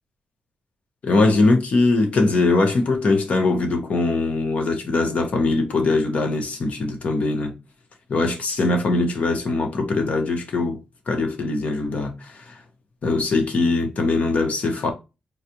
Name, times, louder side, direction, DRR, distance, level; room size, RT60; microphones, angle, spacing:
voice 1, 1.0-7.5 8.1-10.8 11.1-12.5 13.0-14.9, left 3 dB, 60° left, 1.1 m, -21 dB
4.1 x 2.4 x 2.8 m
cardioid pair, 100°, 3 cm